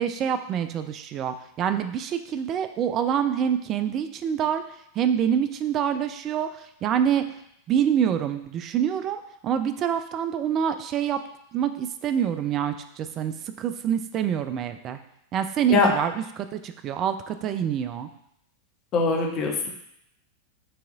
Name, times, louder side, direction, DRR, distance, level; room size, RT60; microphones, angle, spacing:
voice 1, 0.0-4.6 5.0-7.2 7.7-11.2 11.5-15.0 15.3-18.1, right 9 dB, 30° right, 9 dB, 0.3 m, -26 dB
voice 2, 18.9-19.7, left 4 dB, 35° left, 0 dB, 0.8 m, -22 dB
6.0 x 2.9 x 2.3 m, 0.75 s
figure-of-eight pair, 90°, 0 cm